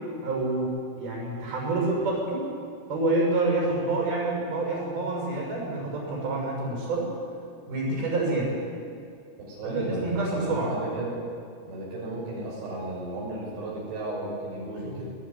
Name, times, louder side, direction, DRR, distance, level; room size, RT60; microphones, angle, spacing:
voice 1, 0.2-2.5 2.9-7.1 7.7-8.5 9.6-10.7 14.8-15.0, right 2 dB, 55° right, -2 dB, 9.0 m, -27 dB
voice 2, 9.4-11.2 11.7-15.1, right 1 dB, 90° right, -5 dB, 8.4 m, -34 dB
22.0 x 20.0 x 9.7 m, 2.3 s
omnidirectional pair, 5.1 m